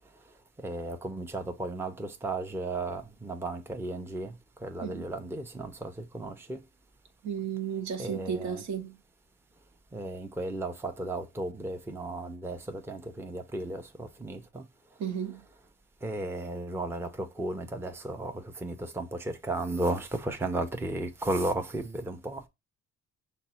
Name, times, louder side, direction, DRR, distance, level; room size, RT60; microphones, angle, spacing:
voice 1, 0.6-6.6 8.0-8.6 9.9-14.6 16.0-22.5, right 2 dB, 10° right, 0.6 m, -34 dB
voice 2, 7.2-9.0 15.0-15.5, right 7 dB, 65° right, 0.9 m, -34 dB
5.8 x 2.0 x 4.2 m
cardioid pair, 90°, 30 cm